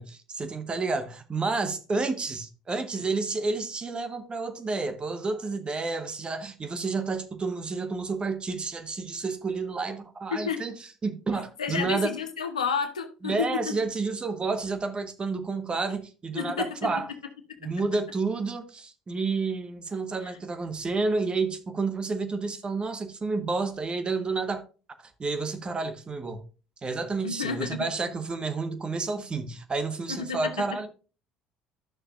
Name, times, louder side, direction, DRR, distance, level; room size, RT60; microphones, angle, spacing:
voice 1, 0.0-10.7 11.0-12.1 13.2-17.1 17.6-24.6 25.0-26.4 26.8-30.9, right 3 dB, 30° right, 1.4 m, -30 dB
voice 2, 11.6-13.5 16.3-16.7 20.2-20.4 27.2-27.8 30.1-30.5, left 6 dB, 85° left, 1.0 m, -30 dB
11.5 x 6.4 x 2.5 m
figure-of-eight pair, 60°, 4 cm